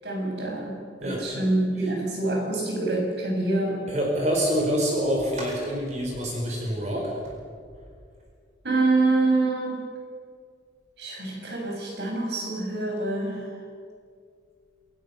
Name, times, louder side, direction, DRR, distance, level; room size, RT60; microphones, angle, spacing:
voice 1, 0.0-3.8 8.6-9.9 11.0-13.5, right 2 dB, 70° right, -1 dB, 7.8 m, -26 dB
voice 2, 1.0-1.4 3.9-7.1, equal, 40° right, -1 dB, 4.6 m, -26 dB
27.5 x 18.0 x 6.9 m, 2.1 s
head